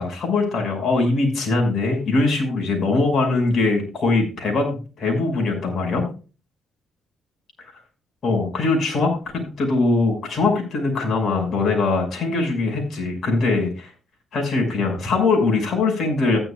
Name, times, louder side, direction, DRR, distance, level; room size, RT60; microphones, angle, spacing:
voice 1, 0.0-6.1 8.2-13.9 14.3-16.4, left 3 dB, 55° left, 1 dB, 6.0 m, -21 dB
15.0 x 11.0 x 2.4 m, 0.33 s
cardioid pair, 90°, 0 cm